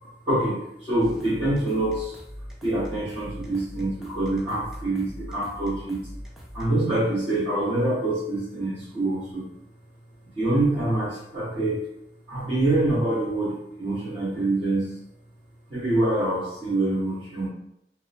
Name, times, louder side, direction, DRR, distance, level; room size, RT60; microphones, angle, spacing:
voice 1, 0.0-2.2 2.6-6.0 6.5-9.5 10.4-11.9 12.3-15.0 15.7-17.5, right 2 dB, 30° right, -13 dB, 0.9 m, -25 dB
sound 1, 1.0-6.7, equal, 5° right, 0.4 m, -41 dB
2.8 x 2.1 x 2.4 m, 0.78 s
head